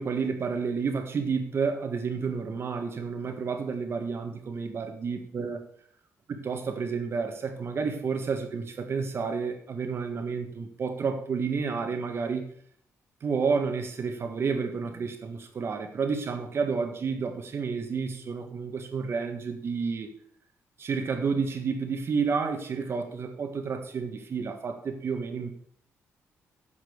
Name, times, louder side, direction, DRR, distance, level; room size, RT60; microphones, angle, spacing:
voice 1, 0.0-5.6 6.4-12.5 13.2-20.1 20.8-25.5, right 5 dB, 50° right, 6 dB, 1.7 m, -30 dB
10.0 x 5.9 x 6.7 m, 0.62 s
cardioid pair, 100°, 5 cm